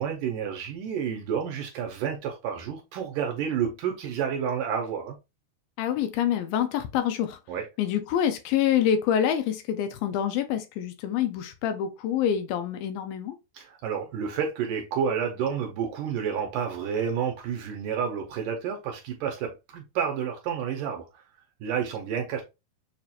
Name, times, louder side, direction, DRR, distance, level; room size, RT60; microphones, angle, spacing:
voice 1, 0.0-5.2 7.5-7.7 13.5-21.2 21.6-22.4, right 7 dB, 75° right, 2.1 m, -30 dB
voice 2, 5.8-7.4 7.8-13.4, left 9 dB, 80° left, 2.3 m, -26 dB
6.8 x 2.5 x 2.8 m
omnidirectional pair, 4.3 m